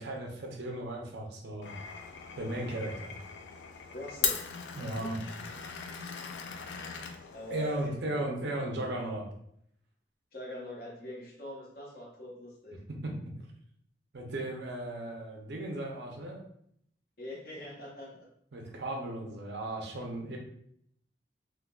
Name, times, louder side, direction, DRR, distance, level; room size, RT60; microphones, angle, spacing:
voice 1, 0.0-1.7 2.4-3.1 4.7-5.2 7.5-9.3 13.0-13.3 14.1-16.4 18.5-20.4, right 1 dB, 70° right, 0 dB, 0.6 m, -36 dB
Glass, 1.6-7.9, left 6 dB, 75° left, 0.3 m, -39 dB
voice 2, 3.9-4.4 4.7-5.1 7.3-8.3 10.3-12.8 17.2-18.3, left 1 dB, 55° left, -3 dB, 0.8 m, -43 dB
3.5 x 2.2 x 2.2 m, 0.70 s
head